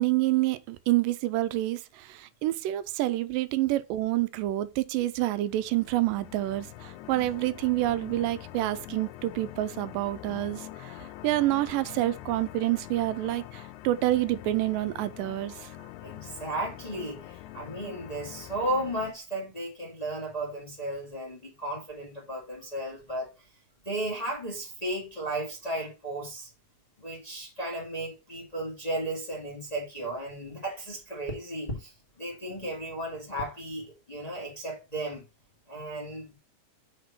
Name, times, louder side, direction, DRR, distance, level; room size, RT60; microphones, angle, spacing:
voice 1, 0.0-11.0 11.2-15.7, right 16 dB, 90° right, 2.2 m, -28 dB
sound 1, 5.4-19.1, left 14 dB, 80° left, 1.9 m, -44 dB
voice 2, 16.0-23.5 23.8-26.5 27.0-35.3 35.7-36.4, right 1 dB, 15° left, 1.5 m, -34 dB
6.5 x 3.6 x 5.8 m
omnidirectional pair, 3.8 m